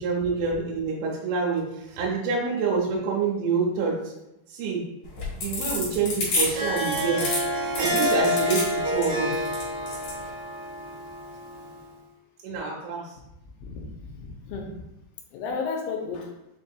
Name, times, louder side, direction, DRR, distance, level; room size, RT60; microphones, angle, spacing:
voice 1, 0.0-4.1 4.5-4.8 5.3-7.3 7.8-9.3 12.4-13.2, right 5 dB, 90° right, -3 dB, 3.3 m, -27 dB
sound 1, 5.0-10.2, left 2 dB, 60° left, 1.8 m, -29 dB
Harp, 6.4-11.8, equal, 75° right, 2.0 m, -28 dB
voice 2, 13.6-14.7 15.3-16.3, left 4 dB, 85° left, 1 dB, 3.0 m, -33 dB
7.1 x 2.7 x 2.3 m, 0.90 s
omnidirectional pair, 5.4 m